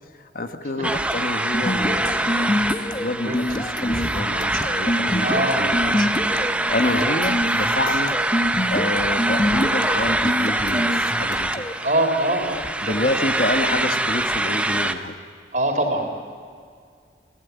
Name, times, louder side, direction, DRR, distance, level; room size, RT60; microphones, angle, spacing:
voice 1, 0.2-6.1 6.4-8.1 8.6-11.5 12.8-15.2, left 1 dB, 50° left, 7 dB, 1.2 m, -28 dB
sound 1, 0.8-14.9, right 1 dB, 5° right, 0.7 m, -24 dB
sound 2, 1.5-11.8, left 1 dB, 25° left, 0.9 m, -27 dB
voice 2, 3.2-3.5 5.2-6.1 6.9-7.2 11.8-14.0 15.5-16.1, right 1 dB, 45° right, 4 dB, 3.5 m, -25 dB
29.0 x 15.5 x 8.2 m, 2.1 s
head